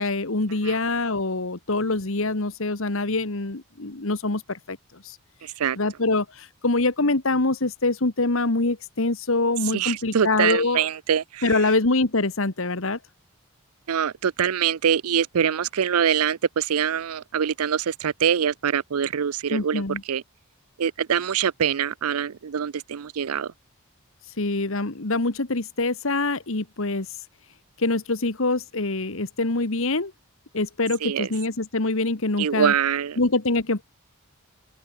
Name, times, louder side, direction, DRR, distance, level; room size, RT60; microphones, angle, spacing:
voice 1, 0.0-5.2 5.8-10.9 11.4-13.0 19.5-20.0 24.2-27.3 27.8-30.1 30.5-32.7 33.2-33.8, left 2 dB, 65° left, 1.6 m, -25 dB
voice 2, 5.4-5.8 9.6-11.6 13.9-20.2 20.8-23.5 31.0-31.3 32.4-33.2, right 8 dB, 85° right, 0.5 m, -24 dB
open air
head